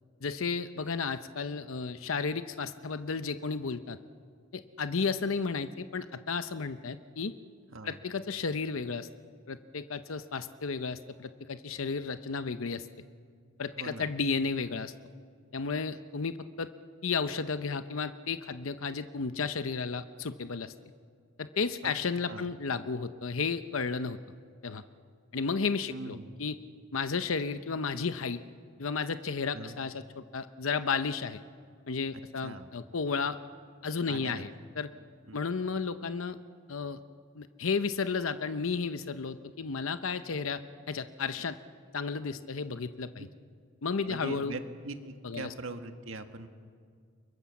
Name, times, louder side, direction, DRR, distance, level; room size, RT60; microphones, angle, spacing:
voice 1, 0.2-4.0 4.5-7.3 7.8-9.1 9.5-12.9 13.6-14.9 15.5-16.7 17.0-20.7 21.4-24.2 24.6-24.8 25.3-26.6 26.9-28.4 28.8-31.4 31.9-33.4 33.8-34.5 34.8-34.9 35.3-36.4 36.7-37.0 37.4-40.6 40.9-41.6 41.9-43.3 43.8-44.5 45.2-45.5, left 5 dB, 80° left, 11 dB, 0.8 m, -33 dB
voice 2, 13.8-14.1 21.8-21.9 22.3-22.5 25.9-26.4 29.5-29.8 32.4-32.7 34.1-34.4 35.3-35.4 43.2-43.3 44.1-46.5, right 2 dB, 70° right, 6 dB, 1.8 m, -41 dB
30.0 x 23.0 x 7.3 m, 2.1 s
head